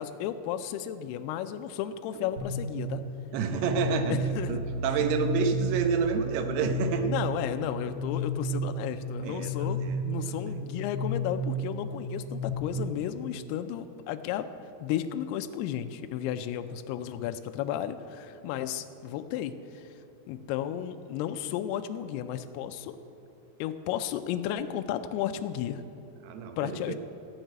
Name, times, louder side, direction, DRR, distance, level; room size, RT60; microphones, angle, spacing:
voice 1, 0.0-3.0 4.1-4.6 7.0-14.5 14.8-19.9 20.3-23.0 23.6-25.9 26.6-27.0, left 10 dB, 80° left, 8 dB, 2.5 m, -33 dB
sound 1, 2.4-12.5, equal, 45° right, 1.1 m, -32 dB
voice 2, 3.3-4.2 4.5-7.1 9.2-10.0 10.5-10.6 18.5-18.6 26.2-27.0, right 6 dB, 80° right, 6 dB, 2.8 m, -29 dB
13.5 x 6.5 x 9.0 m, 2.7 s
omnidirectional pair, 4.8 m